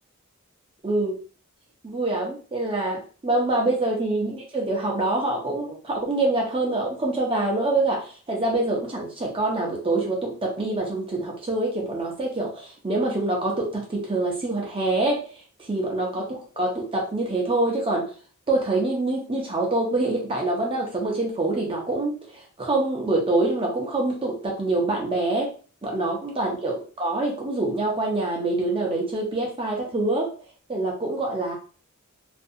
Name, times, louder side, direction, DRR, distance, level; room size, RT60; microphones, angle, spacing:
voice 1, 0.8-1.1 1.8-15.2 15.7-18.1 18.5-25.5 25.8-30.3 30.7-31.5, right 2 dB, 25° right, 0 dB, 0.5 m, -25 dB
2.4 x 2.2 x 2.6 m, 0.39 s
head